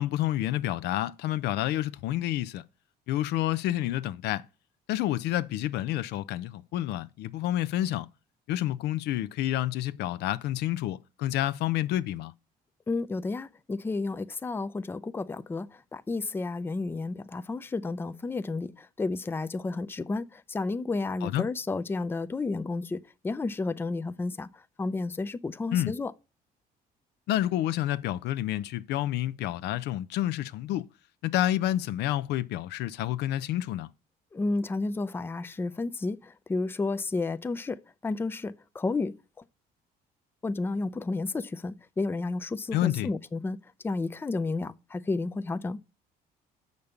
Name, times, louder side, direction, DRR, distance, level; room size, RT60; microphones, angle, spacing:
voice 1, 0.0-2.6 3.1-4.4 4.9-8.1 8.5-12.3 21.2-21.4 25.7-25.9 27.3-30.9 31.2-33.9 42.7-43.1, left 13 dB, 80° left, 0.5 m, -29 dB
voice 2, 12.9-23.0 23.2-24.5 24.8-26.1 34.3-39.1 40.4-43.6 43.8-45.8, left 3 dB, 15° left, 0.4 m, -31 dB
6.5 x 5.2 x 7.0 m
cardioid pair, 110°, 17 cm